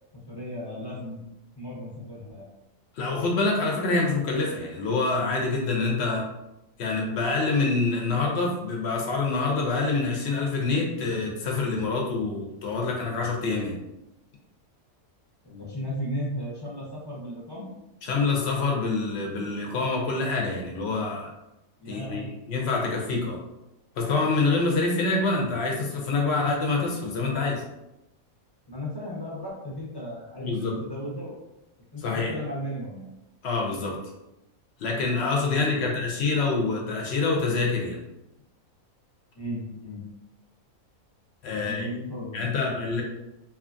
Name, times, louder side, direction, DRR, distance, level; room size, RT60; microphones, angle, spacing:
voice 1, 0.3-1.2 1.6-2.5 15.4-17.7 21.8-22.3 28.7-31.4 31.9-33.1 35.5-35.9 39.3-40.0 41.5-42.8, equal, 30° left, -5 dB, 0.5 m, -35 dB
voice 2, 2.9-6.3 6.8-13.8 18.0-21.3 21.9-23.4 23.9-27.6 30.4-30.8 32.0-32.3 33.4-34.0 34.8-38.0 41.4-41.9 42.3-43.0, left 3 dB, 65° left, 0 dB, 0.7 m, -26 dB
2.7 x 2.3 x 2.5 m, 0.92 s
omnidirectional pair, 1.5 m